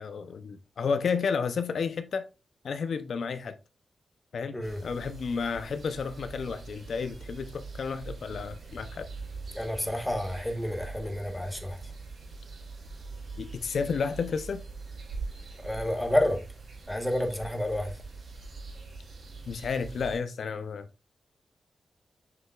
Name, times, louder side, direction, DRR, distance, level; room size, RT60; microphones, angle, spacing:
voice 1, 0.0-2.2 2.6-3.5 4.3-9.0 13.4-14.6 19.5-20.9, left 5 dB, 65° left, 0.6 m, -31 dB
sound 1, 4.6-20.2, right 4 dB, 55° right, 4.3 m, -43 dB
voice 2, 9.5-11.9 15.6-16.4 16.9-18.0, left 1 dB, 5° left, 1.2 m, -30 dB
6.9 x 6.5 x 2.3 m
wide cardioid pair, 160°, 0 cm